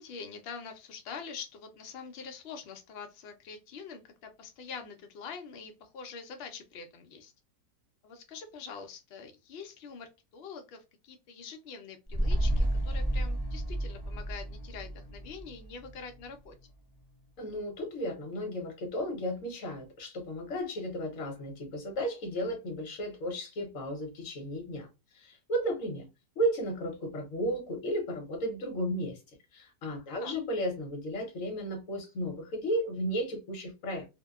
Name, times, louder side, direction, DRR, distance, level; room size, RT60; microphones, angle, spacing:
voice 1, 0.0-7.3 8.0-16.5 30.1-30.4, left 5 dB, 85° left, 0.5 m, -45 dB
sound 1, 12.1-16.6 16.9-17.0, right 1 dB, 10° right, 0.6 m, -31 dB
voice 2, 17.4-24.9 25.1-26.0 26.4-29.2 29.5-34.1, equal, 60° left, 1.1 m, -34 dB
2.7 x 2.1 x 2.2 m
omnidirectional pair, 1.7 m